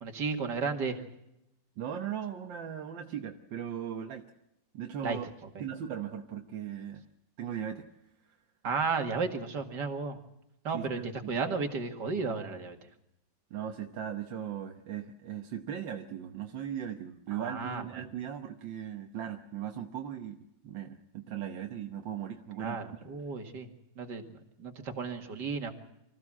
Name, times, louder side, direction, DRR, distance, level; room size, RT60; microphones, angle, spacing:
voice 1, 0.0-1.0 5.0-5.2 8.6-10.2 10.6-12.8 17.3-18.0 22.6-23.7 24.0-24.2 24.6-25.7, right 4 dB, 70° right, 5 dB, 2.6 m, -33 dB
voice 2, 1.8-4.3 4.7-5.3 5.6-7.0 7.4-7.9 10.7-11.4 13.5-20.4 20.6-23.2, right 9 dB, 85° right, 4 dB, 1.8 m, -38 dB
25.0 x 15.5 x 7.5 m, 0.85 s
omnidirectional pair, 2.0 m